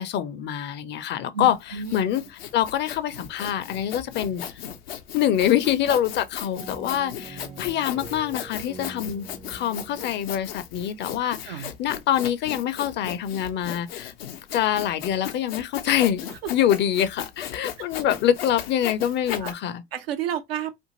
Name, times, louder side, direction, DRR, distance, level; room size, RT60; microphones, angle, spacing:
voice 1, 0.0-1.6 1.9-2.2 2.5-4.4 5.1-14.1 14.5-16.2 16.5-19.8, left 10 dB, 35° left, 0.5 m, -25 dB
voice 2, 1.3-1.9 11.4-11.7 16.3-16.5 19.4-19.5 19.9-20.7, right 8 dB, 85° right, 0.6 m, -31 dB
Sawing, 1.5-19.5, left 9 dB, 80° left, 0.6 m, -37 dB
sound 1, 6.6-11.2, right 4 dB, 15° right, 0.4 m, -44 dB
2.6 x 2.4 x 2.8 m
hypercardioid pair, 75°, 30 cm